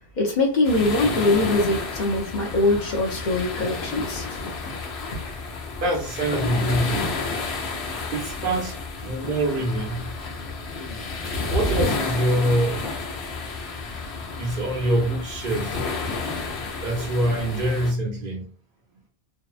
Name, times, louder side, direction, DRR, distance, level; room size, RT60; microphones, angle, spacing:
voice 1, 0.2-4.3 5.2-5.3, left 2 dB, 50° left, 0.7 m, -22 dB
sound 1, 0.6-17.9, left 3 dB, 75° left, 0.9 m, -31 dB
voice 2, 5.8-7.2 8.1-10.1 11.5-12.8 14.4-15.8 16.8-18.5, right 1 dB, 55° right, 0.8 m, -25 dB
2.7 x 2.1 x 2.4 m
omnidirectional pair, 1.1 m